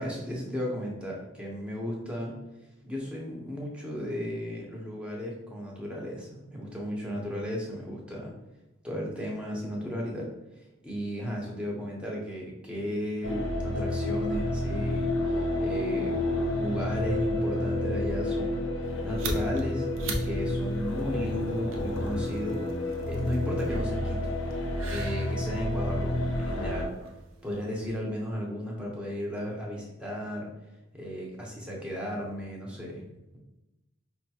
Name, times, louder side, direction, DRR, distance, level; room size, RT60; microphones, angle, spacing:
voice 1, 0.0-2.4 2.8-8.3 8.8-10.3 10.8-15.1 15.6-16.3 16.6-18.6 19.0-24.3 24.8-26.9 27.4-30.5 30.9-33.0, equal, 5° right, -3 dB, 0.7 m, -35 dB
sound 1, 13.2-26.8, left 1 dB, 70° left, 0.5 m, -30 dB
sound 2, 18.8-28.0, right 2 dB, 85° right, 0.5 m, -41 dB
4.9 x 2.3 x 2.8 m, 0.96 s
head